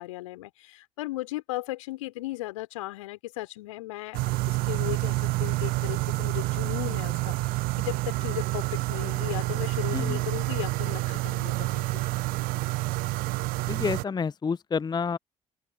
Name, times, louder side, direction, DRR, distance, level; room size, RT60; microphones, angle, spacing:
voice 1, 0.0-12.0, left 18 dB, 75° left, 4.2 m, -36 dB
sound 1, 4.1-14.0, right 21 dB, 60° right, 0.4 m, -28 dB
voice 2, 13.7-15.2, left 5 dB, 25° left, 0.6 m, -29 dB
open air
figure-of-eight pair, 45°, 17 cm